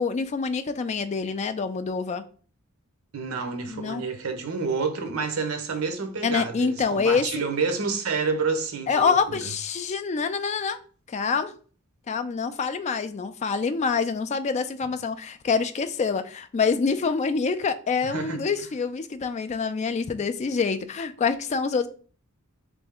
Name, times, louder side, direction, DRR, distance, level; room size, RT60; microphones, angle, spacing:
voice 1, 0.0-2.2 3.7-4.0 6.2-7.3 8.9-10.8 11.1-11.5 12.1-21.9, left 5 dB, 30° left, 0.3 m, -26 dB
voice 2, 3.1-9.4 18.0-18.4, right 4 dB, 80° right, 0.8 m, -29 dB
3.4 x 3.2 x 3.5 m
head